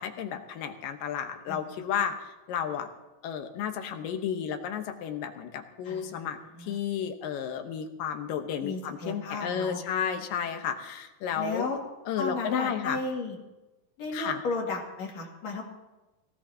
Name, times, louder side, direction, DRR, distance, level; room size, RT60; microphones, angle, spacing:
voice 1, 0.0-2.9 3.2-11.7 12.1-13.0 14.1-14.4, left 8 dB, 80° left, 6 dB, 2.8 m, -32 dB
voice 2, 1.5-1.8 5.8-6.8 8.6-9.8 11.4-11.8 12.2-13.4 14.0-15.6, left 3 dB, 50° left, -1 dB, 3.4 m, -34 dB
22.0 x 17.5 x 2.9 m, 1.1 s
omnidirectional pair, 3.9 m